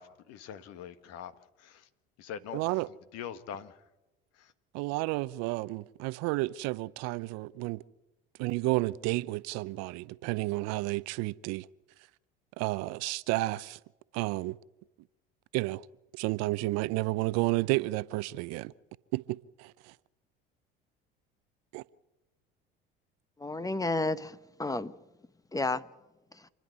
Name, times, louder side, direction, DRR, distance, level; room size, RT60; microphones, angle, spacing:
voice 1, 0.0-1.3 1.6-1.9 2.2-2.8 3.1-3.8 4.3-4.5, left 8 dB, 60° left, 1.6 m, -43 dB
voice 2, 2.5-2.9 4.7-7.8 8.4-11.7 12.6-13.8 14.1-14.6 15.5-15.9 16.1-18.7 19.1-19.9 21.7-21.8, right 21 dB, 60° right, 0.7 m, -31 dB
voice 3, 23.4-24.9 25.5-25.8 26.3-26.5, left 2 dB, 10° left, 1.0 m, -31 dB
28.0 x 10.5 x 9.5 m
hypercardioid pair, 70°, 29 cm